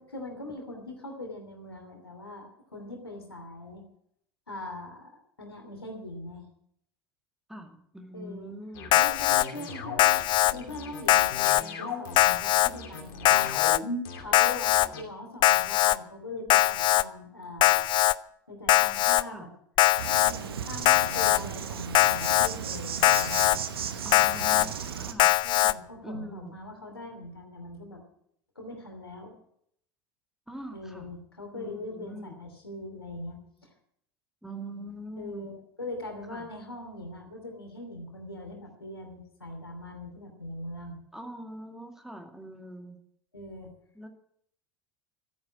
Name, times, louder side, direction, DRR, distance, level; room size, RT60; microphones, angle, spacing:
voice 1, 0.0-3.8 4.5-6.5 8.1-8.5 8.9-10.1 10.5-13.5 14.1-17.9 18.5-19.5 20.2-23.4 25.4-28.0 28.5-29.4 30.7-33.7 35.2-41.0 43.3-43.7, left 1 dB, 85° left, 3 dB, 2.9 m, -41 dB
voice 2, 7.5-9.0 19.3-19.5 24.0-25.4 26.0-26.5 30.5-31.1 31.5-32.4 34.4-35.5 36.3-36.5 41.1-43.0 44.0-44.1, right 1 dB, 5° right, 4 dB, 2.2 m, -43 dB
sound 1, 8.7-15.0, left 3 dB, 60° left, 2.9 m, -38 dB
Alarm, 8.9-9.4 10.0-10.5 11.1-11.6 12.2-12.7 13.2-13.8 14.3-14.9 15.4-16.0 16.5-17.0 17.6-18.1 18.7-19.2 19.8-20.3 20.9-21.4 21.9-22.5 23.0-23.6 24.1-24.7 25.2-25.7, left 15 dB, 40° left, 0.5 m, -21 dB
Insect, 20.0-25.1, right 8 dB, 75° right, 1.1 m, -35 dB
14.0 x 9.5 x 7.2 m, 0.68 s
figure-of-eight pair, 70°, 13 cm